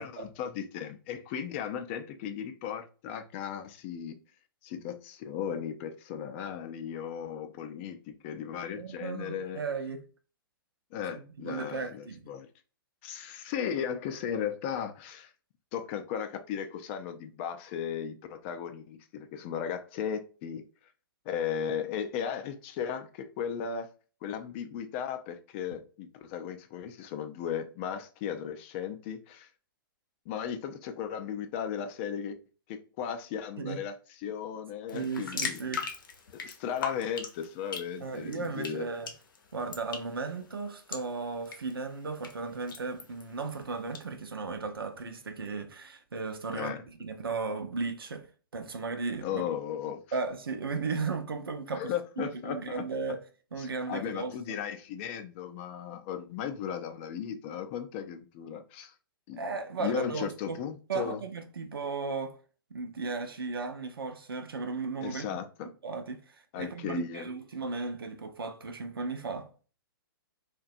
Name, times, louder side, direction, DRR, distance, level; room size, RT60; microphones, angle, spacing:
voice 1, 0.0-4.2 4.6-9.6 10.9-12.5 13.0-15.3 15.7-20.6 21.3-23.9 24.2-29.5 30.3-32.4 32.7-33.9 34.2-35.9 36.3-38.8 46.5-46.8 49.2-50.0 51.7-52.8 53.6-58.9 59.3-59.4 59.8-61.2 65.0-65.7 66.5-67.3, left 8 dB, 35° left, 0.3 m, -36 dB
voice 2, 8.8-10.0 11.0-11.1 11.5-12.2 33.6-33.8 34.9-35.9 38.0-39.1 39.5-48.2 48.5-49.4 50.1-53.2 53.5-54.6 59.4-60.6 60.9-62.4 62.7-65.4 65.8-69.5, right 4 dB, 80° right, 0.5 m, -35 dB
sound 1, 34.9-44.0, left 5 dB, 65° left, 0.6 m, -41 dB
2.6 x 2.1 x 2.5 m
figure-of-eight pair, 115°, 12 cm